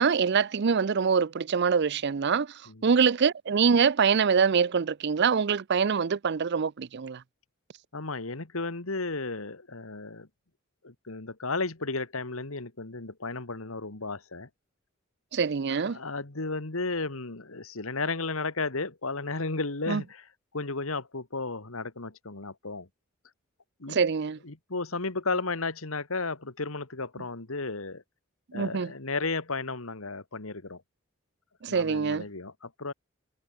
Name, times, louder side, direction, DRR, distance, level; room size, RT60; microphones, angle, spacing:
voice 1, 0.0-2.5 2.8-7.2 15.3-16.0 19.9-20.0 23.9-24.4 28.5-28.9 31.6-32.2, right 6 dB, 50° right, 0.5 m, -24 dB
voice 2, 7.9-10.3 10.8-14.5 15.7-20.2 20.5-22.9 23.8-24.0 24.4-28.0 28.5-30.8 31.7-32.9, left 3 dB, 75° left, 2.0 m, -34 dB
head